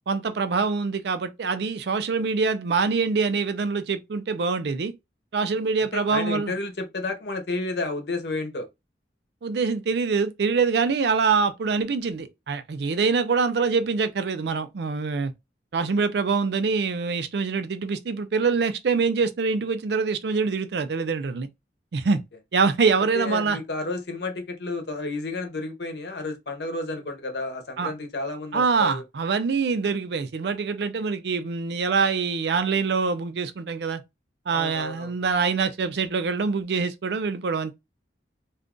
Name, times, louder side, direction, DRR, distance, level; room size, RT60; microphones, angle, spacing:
voice 1, 0.1-4.9 5.3-6.5 9.4-15.3 15.7-21.5 21.9-22.2 22.5-23.6 27.8-27.9 28.5-34.0 34.5-37.7, right 5 dB, 70° right, 0.4 m, -24 dB
voice 2, 5.8-8.7 22.0-22.2 23.1-29.0 34.5-35.2, left 2 dB, 70° left, 0.8 m, -31 dB
2.5 x 2.4 x 3.6 m
head